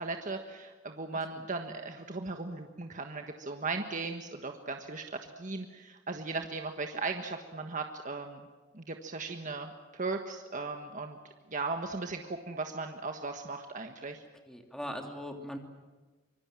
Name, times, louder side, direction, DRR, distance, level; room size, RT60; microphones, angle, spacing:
voice 1, 0.0-8.5 8.7-11.2 11.5-14.2, right 3 dB, 45° right, 4 dB, 1.5 m, -37 dB
voice 2, 14.5-15.6, equal, 5° left, 3 dB, 2.8 m, -40 dB
25.5 x 23.0 x 7.6 m, 1.3 s
head